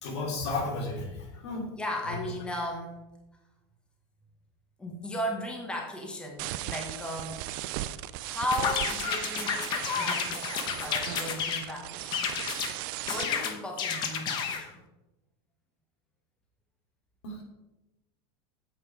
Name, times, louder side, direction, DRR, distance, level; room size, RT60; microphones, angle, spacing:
voice 1, 0.0-1.6 2.1-2.3 17.2-17.4, left 3 dB, 85° left, 1 dB, 2.9 m, -33 dB
voice 2, 1.8-3.0 4.8-7.5 8.2-9.6 10.0-10.3 10.8-12.3 13.1-14.7, left 1 dB, 5° left, 1 dB, 1.2 m, -36 dB
sound 1, 6.4-13.2, right 15 dB, 50° right, 0.4 m, -37 dB
sound 2, 8.5-11.7 12.1-12.7 13.1-14.6, left 6 dB, 30° left, 1.0 m, -31 dB
8.6 x 7.6 x 4.7 m, 1.0 s
supercardioid pair, 165°, 14 cm